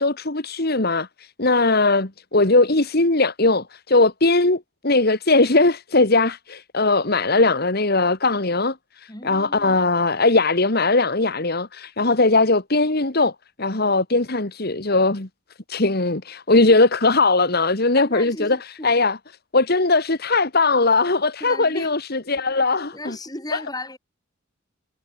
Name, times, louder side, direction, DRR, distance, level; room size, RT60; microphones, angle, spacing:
voice 1, 0.0-13.3 13.6-15.3 15.7-18.6 18.8-19.2 19.5-23.2 23.5-23.6, left 3 dB, 50° left, 1.9 m, -19 dB
voice 2, 9.1-9.8 18.0-18.9 21.4-21.9 22.9-24.0, left 2 dB, 20° left, 8.0 m, -35 dB
head